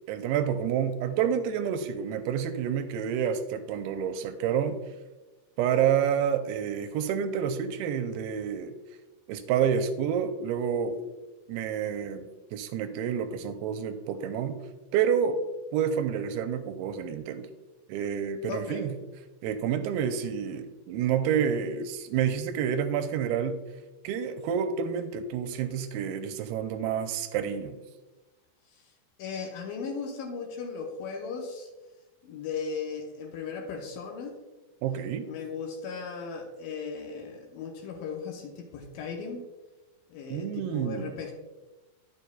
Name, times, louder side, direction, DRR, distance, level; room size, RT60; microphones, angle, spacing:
voice 1, 0.1-4.8 5.6-8.7 9.3-11.0 11.5-14.6 14.9-15.4 15.7-17.5 17.9-18.9 19.4-23.6 24.0-27.8 34.8-35.3 40.3-41.2, right 8 dB, 90° right, 8 dB, 2.6 m, -29 dB
voice 2, 18.5-18.8 29.2-31.7 32.2-34.4 35.2-39.4 40.1-41.3, left 5 dB, 75° left, 2 dB, 2.3 m, -37 dB
10.5 x 7.1 x 2.2 m, 1.1 s
omnidirectional pair, 4.5 m